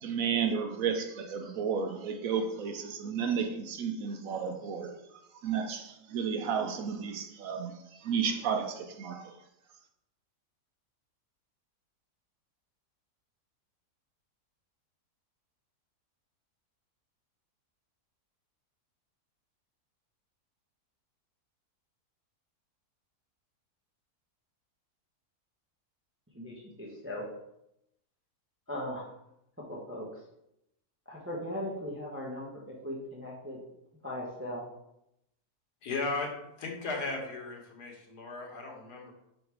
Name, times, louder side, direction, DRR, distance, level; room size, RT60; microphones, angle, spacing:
voice 1, 0.0-5.0 5.4-9.3, right 6 dB, 65° right, 6 dB, 1.0 m, -32 dB
voice 2, 26.3-27.2 28.7-29.1 29.7-30.2 31.1-33.6 34.0-34.7, left 1 dB, 10° right, -4 dB, 0.9 m, -38 dB
voice 3, 35.8-39.1, left 3 dB, 90° left, 1 dB, 1.7 m, -36 dB
5.3 x 3.9 x 4.6 m, 0.82 s
omnidirectional pair, 1.7 m